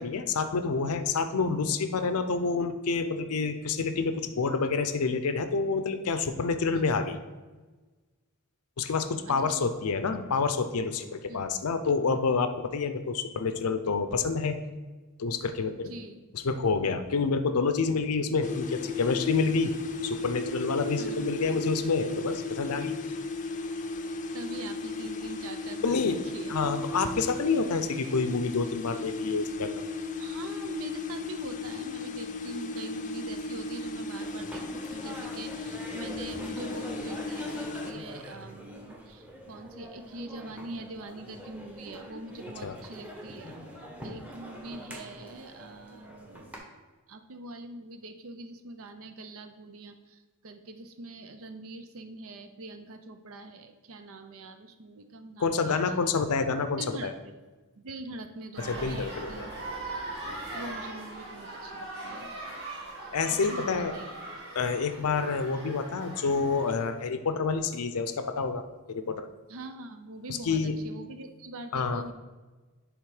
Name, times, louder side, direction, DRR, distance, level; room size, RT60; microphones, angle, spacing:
voice 1, 0.0-7.2 8.8-14.6 15.2-15.9 16.3-19.7 20.0-23.0 25.8-26.2 26.5-29.7 42.6-42.8 55.4-57.1 58.6-59.3 63.1-64.0 64.5-69.3 70.3-70.8 71.7-72.0, left 4 dB, 85° left, 9 dB, 0.5 m, -28 dB
voice 2, 9.3-9.7 11.3-11.5 15.8-16.2 21.0-21.3 24.3-26.8 30.2-43.6 44.0-46.5 47.1-56.1 56.8-57.1 57.8-59.6 60.5-62.3 63.5-64.1 69.5-72.1, right 2 dB, 65° right, 8 dB, 0.6 m, -43 dB
sound 1, 18.4-37.9, left 3 dB, 35° left, 0.5 m, -36 dB
sound 2, 34.2-46.6, equal, 5° right, 1.1 m, -44 dB
sound 3, 58.5-66.8, right 2 dB, 50° right, 2.1 m, -40 dB
10.5 x 3.6 x 4.8 m, 1.3 s
head